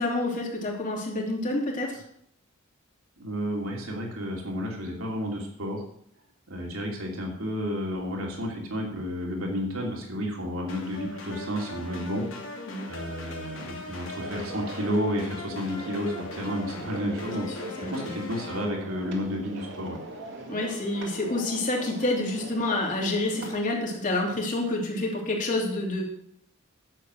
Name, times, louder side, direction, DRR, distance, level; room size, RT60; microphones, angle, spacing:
voice 1, 0.0-2.0 12.7-12.9 17.8-18.1 20.5-26.0, left 2 dB, 40° left, -1 dB, 3.0 m, -28 dB
voice 2, 3.2-5.8 6.5-12.3 12.8-20.0, equal, 80° right, 0 dB, 2.8 m, -31 dB
sound 1, 10.7-18.7, left 3 dB, 70° left, 2.8 m, -40 dB
sound 2, 14.1-23.6, right 2 dB, 60° right, 2.2 m, -41 dB
11.0 x 7.5 x 6.4 m, 0.69 s
head